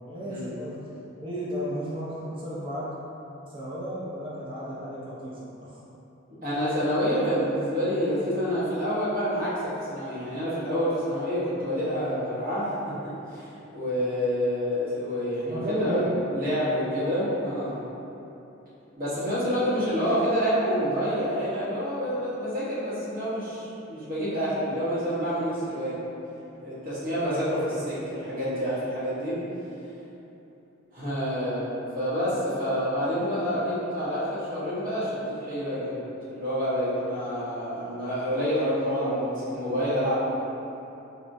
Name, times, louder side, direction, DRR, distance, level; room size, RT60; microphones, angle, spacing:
voice 1, 0.1-0.8 1.2-2.8 3.5-5.7 15.4-16.0, equal, 25° right, -7 dB, 0.4 m, -33 dB
voice 2, 6.4-9.6 9.9-12.9 13.3-16.0 16.3-17.8 18.9-26.0 26.6-29.4 30.9-36.0 36.3-40.2, equal, 45° right, -11 dB, 1.1 m, -28 dB
4.0 x 2.1 x 2.6 m, 3.0 s
head